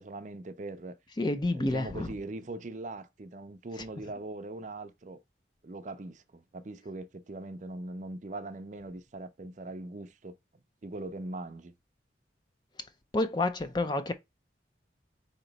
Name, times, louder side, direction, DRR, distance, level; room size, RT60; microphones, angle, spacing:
voice 1, 0.0-1.0 1.5-5.2 5.6-10.4 10.8-11.7, right 2 dB, 40° right, 0.5 m, -41 dB
voice 2, 1.2-2.1 13.1-14.1, left 2 dB, 25° left, 0.4 m, -29 dB
4.3 x 3.0 x 3.9 m
head